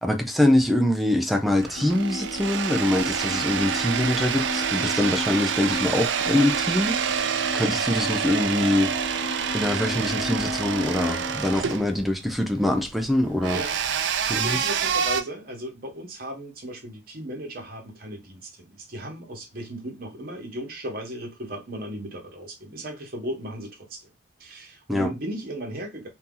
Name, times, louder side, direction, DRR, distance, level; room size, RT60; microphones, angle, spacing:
voice 1, 0.0-8.9 9.5-13.6 14.3-14.7 24.9-25.1, left 1 dB, ahead, 0.4 m, -24 dB
sound 1, 1.5-15.2, right 7 dB, 75° right, 0.4 m, -28 dB
sound 2, 1.7-11.4, left 2 dB, 55° left, 0.5 m, -35 dB
voice 2, 14.0-24.1 24.4-26.1, right 1 dB, 55° right, 1.1 m, -36 dB
2.8 x 2.7 x 3.7 m
head